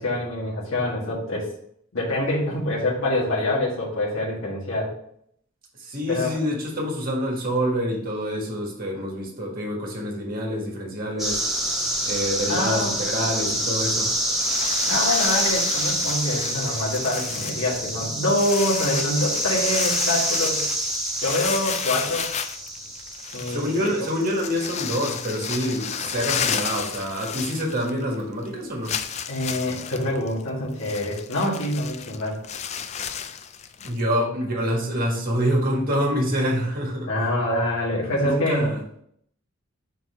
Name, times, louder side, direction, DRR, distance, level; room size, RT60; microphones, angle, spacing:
voice 1, 0.0-1.5 1.9-4.9 6.1-6.4 12.5-13.0 14.9-20.6 21.2-22.3 23.3-23.6 29.3-32.4 37.1-38.7, left 1 dB, 70° left, -5 dB, 1.9 m, -25 dB
voice 2, 5.8-11.4 12.0-14.1 23.5-28.9 33.8-37.1 38.2-38.8, equal, 45° right, -2 dB, 1.7 m, -26 dB
sound 1, 11.2-25.2, right 1 dB, ahead, 1.4 m, -27 dB
sound 2, 14.4-28.1 28.4-28.5 28.8-34.0, left 8 dB, 30° left, 0.3 m, -32 dB
4.4 x 4.1 x 5.5 m, 0.68 s
head